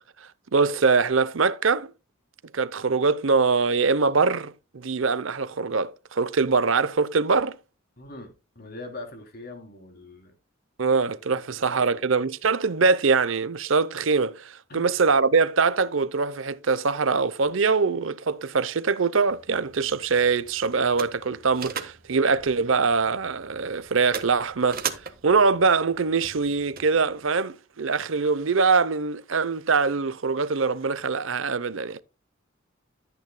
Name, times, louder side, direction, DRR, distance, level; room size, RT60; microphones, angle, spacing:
voice 1, 0.5-1.9 2.5-7.6 10.8-24.8 25.2-32.0, right 4 dB, 70° right, 0.7 m, -23 dB
voice 2, 8.0-10.3 11.3-11.4 11.7-12.1 14.7-14.9, left 2 dB, 45° left, 3.1 m, -42 dB
sound 1, 19.3-27.3, right 7 dB, 45° right, 1.4 m, -39 dB
13.5 x 9.2 x 2.2 m
head